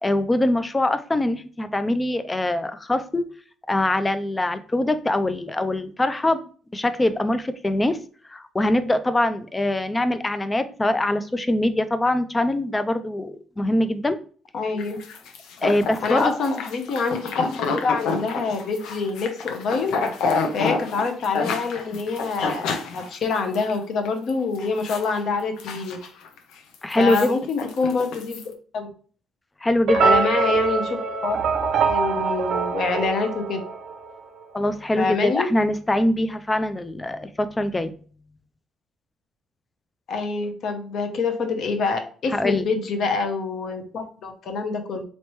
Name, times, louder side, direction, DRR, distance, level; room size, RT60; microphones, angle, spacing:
voice 1, 0.0-3.3 3.7-6.4 6.7-8.0 8.3-14.2 15.6-16.3 26.8-27.3 29.6-30.2 34.5-37.9 42.3-42.6, left 1 dB, 10° left, 12 dB, 0.3 m, -23 dB
voice 2, 14.5-15.0 16.0-19.9 20.5-26.0 27.0-28.4 28.7-28.9 29.9-33.6 35.0-35.5 40.1-45.0, left 4 dB, 50° left, 5 dB, 0.8 m, -26 dB
sound 1, 14.8-23.7 24.1-24.3 24.5-25.1 25.4-26.4 26.7-28.4, left 4 dB, 90° left, 0.7 m, -29 dB
sound 2, 29.9-34.2, right 5 dB, 50° right, 0.6 m, -23 dB
4.1 x 3.2 x 3.0 m, 0.42 s
cardioid pair, 170°, 0 cm